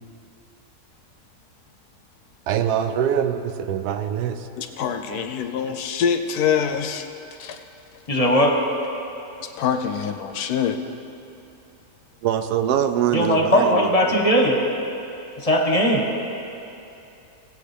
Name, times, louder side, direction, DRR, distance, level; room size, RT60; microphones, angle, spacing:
voice 1, 2.5-4.4 5.1-5.2 12.2-14.2, right 9 dB, 75° right, 8 dB, 1.1 m, -23 dB
voice 2, 4.6-7.1 7.4-7.6 9.4-10.8, left 7 dB, 75° left, 6 dB, 1.1 m, -25 dB
voice 3, 8.1-8.5 13.1-14.6 15.4-16.0, equal, 25° left, 0 dB, 0.9 m, -18 dB
18.0 x 8.2 x 3.4 m, 2.8 s
omnidirectional pair, 1.7 m